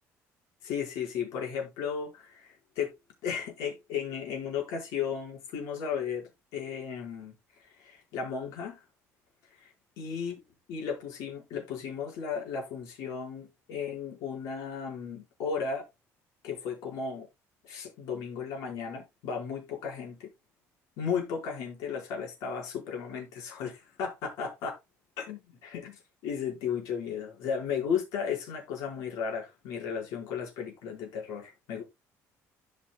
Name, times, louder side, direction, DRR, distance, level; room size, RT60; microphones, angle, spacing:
voice 1, 0.6-2.9 3.2-8.8 9.5-10.3 10.7-15.8 16.4-17.3 17.6-20.3 21.0-24.8 25.2-31.8, left 6 dB, 85° left, 4.5 m, -35 dB
16.0 x 5.7 x 2.2 m
cardioid pair, 130°, 6 cm